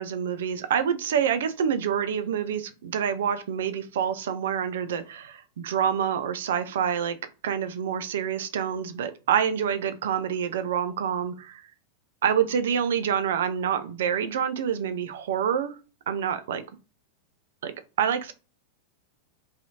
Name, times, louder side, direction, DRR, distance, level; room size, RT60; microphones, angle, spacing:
voice 1, 0.0-7.2 7.4-11.6 12.2-15.8 16.1-16.6 17.6-17.7 18.0-18.3, right 8 dB, 60° right, 0.3 m, -27 dB
2.7 x 2.4 x 2.7 m
figure-of-eight pair, 90°, 0 cm